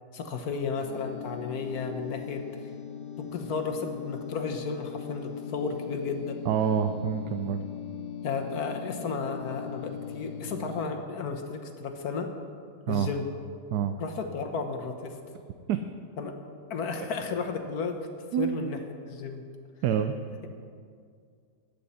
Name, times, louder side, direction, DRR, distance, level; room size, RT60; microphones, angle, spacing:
voice 1, 0.1-2.5 3.2-6.4 8.2-12.3 12.9-13.3 14.0-15.2 16.2-16.3 16.7-18.1 18.4-18.8 19.1-19.4, left 4 dB, 70° left, 5 dB, 1.5 m, -33 dB
sound 1, 0.8-10.9, left 9 dB, 55° left, 1.3 m, -40 dB
voice 2, 6.5-7.6 12.9-13.1 13.7-14.0 15.7-15.8 18.3-18.6 19.8-20.2, right 8 dB, 80° right, 8 dB, 1.2 m, -27 dB
20.5 x 8.6 x 4.2 m, 2.2 s
omnidirectional pair, 1.7 m